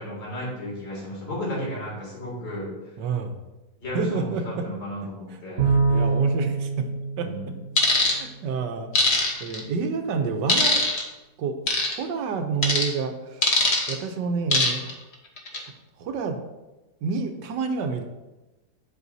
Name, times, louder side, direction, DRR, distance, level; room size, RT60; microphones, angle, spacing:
voice 1, 0.0-2.7 3.8-5.7 7.2-7.6, equal, 85° left, -5 dB, 3.3 m, -34 dB
voice 2, 3.0-3.3 3.9-4.7 5.7-6.9 7.2-7.3 8.0-8.9 9.4-10.8 11.4-11.6 11.9-14.8 15.5-15.7 16.0-16.4 17.0-18.0, right 5 dB, 80° right, 6 dB, 1.4 m, -29 dB
Bowed string instrument, 5.6-8.2, right 4 dB, 40° right, 1.0 m, -25 dB
sound 1, 7.8-8.1 8.9-9.6 10.5-11.0 11.7-11.9 12.6-12.9 13.4-13.9 14.5-14.9 15.4-15.6, left 2 dB, 40° left, 1.2 m, -21 dB
11.0 x 5.7 x 2.7 m, 1.1 s
omnidirectional pair, 1.9 m